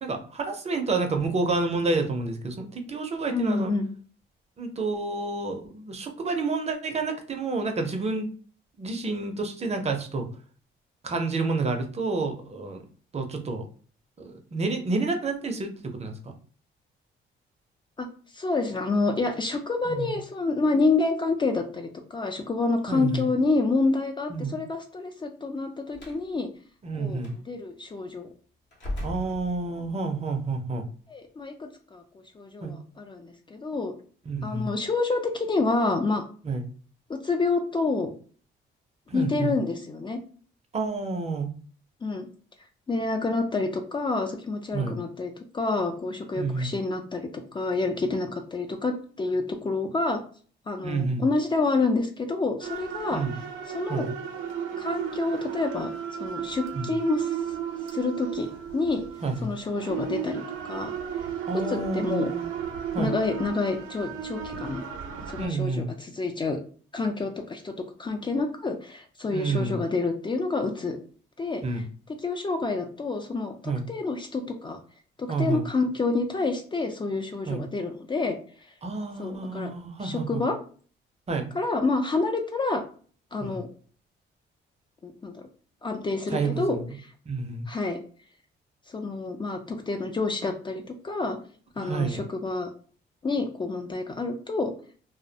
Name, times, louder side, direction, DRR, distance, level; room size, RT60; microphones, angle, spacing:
voice 1, 0.0-3.7 4.6-8.3 8.8-10.3 11.0-12.8 13.1-13.7 14.2-16.3 19.9-20.1 22.9-23.3 24.3-24.6 26.8-27.3 29.0-30.8 32.6-32.7 34.3-34.7 36.4-36.6 39.1-39.5 40.7-41.5 44.7-45.0 46.3-46.7 50.8-51.2 53.1-53.4 53.9-54.1 56.7-56.9 59.2-59.5 61.5-62.5 62.9-63.1 65.4-65.9 69.3-69.8 71.6-71.9 73.6-73.9 75.3-75.7 77.5-77.6 78.8-80.4 81.3-81.5 83.4-83.6 86.3-87.0 87.3-87.7 91.8-92.2, right 3 dB, 35° right, 4 dB, 0.5 m, -29 dB
voice 2, 3.3-3.9 18.0-18.1 18.3-26.5 27.0-28.3 31.1-32.0 32.4-33.9 34.4-36.2 37.1-38.1 39.1-40.2 42.0-42.3 42.9-50.2 50.7-53.2 53.7-54.1 54.8-55.9 56.2-57.3 57.9-59.0 59.4-60.4 60.7-60.9 61.5-62.3 63.0-64.8 65.3-66.6 66.9-67.7 68.0-71.0 71.4-71.8 72.2-74.8 75.2-78.4 79.2-79.7 80.0-80.6 81.5-82.8 83.3-83.7 85.0-85.5 85.8-87.1 87.7-88.0 88.9-91.4 91.8-92.7 93.2-94.7, left 3 dB, 25° left, 4 dB, 0.3 m, -28 dB
Slam, 25.9-26.3 27.2-27.4 28.7-30.0, left 1 dB, 65° left, 0.9 m, -36 dB
sound 1, 52.6-65.5, right 8 dB, 85° right, 0.5 m, -34 dB
2.2 x 2.1 x 2.7 m, 0.43 s
cardioid pair, 90°, 20 cm